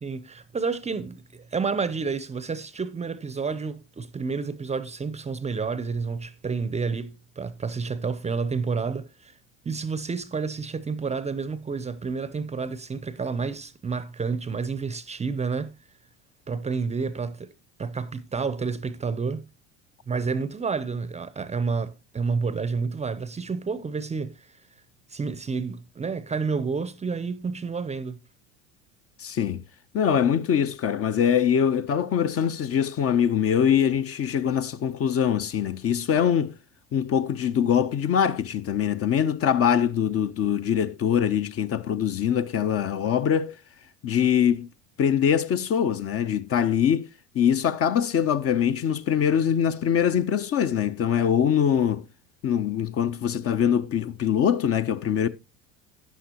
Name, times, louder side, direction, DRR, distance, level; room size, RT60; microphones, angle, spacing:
voice 1, 0.0-9.3 9.6-15.7 16.5-17.5 17.8-19.4 20.1-24.5 25.1-28.2, right 5 dB, 15° right, 0.7 m, -30 dB
voice 2, 29.2-29.6 29.9-36.5 36.9-43.5 44.0-44.7 45.0-47.1 47.3-52.0 52.4-55.3, left 8 dB, 40° left, 0.8 m, -23 dB
12.5 x 9.4 x 2.9 m
hypercardioid pair, 80°, 38 cm